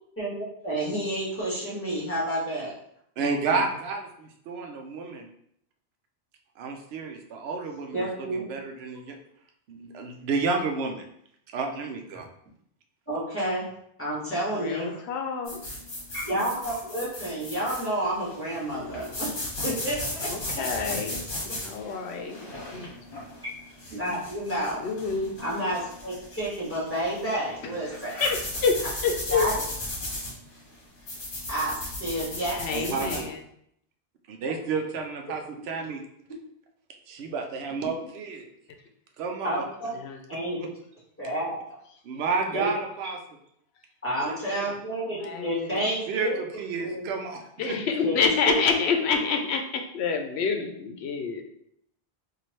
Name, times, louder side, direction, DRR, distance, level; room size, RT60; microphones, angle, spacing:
voice 1, 0.6-2.7 3.2-3.6 7.9-8.6 13.1-13.6 14.0-15.0 16.1-20.6 23.9-24.8 25.4-28.3 28.8-28.9 29.3-29.6 31.5-33.2 39.4-39.9 40.3-40.6 41.2-41.6 42.5-42.7 44.0-46.4 46.8-47.0 48.0-48.2 48.4-48.5, right 1 dB, 10° left, -8 dB, 1.6 m, -30 dB
voice 2, 3.2-5.3 6.6-9.2 9.7-11.0 11.5-12.3 32.7-33.3 34.3-36.0 37.1-38.5 39.2-39.6 40.6-40.7 42.0-43.2 44.2-44.7 46.1-47.8, right 4 dB, 80° right, 3 dB, 0.8 m, -31 dB
voice 3, 14.5-15.6 20.2-21.2 21.6-22.4 22.7-22.9 24.8-25.3 28.2-28.7 29.0-29.5 32.6-33.3 40.0-40.2 45.2-45.8 47.6-51.4, left 5 dB, 85° left, 5 dB, 0.9 m, -27 dB
sound 1, 15.4-33.2, left 1 dB, 55° left, 1.3 m, -36 dB
4.2 x 2.7 x 3.0 m, 0.71 s
omnidirectional pair, 1.1 m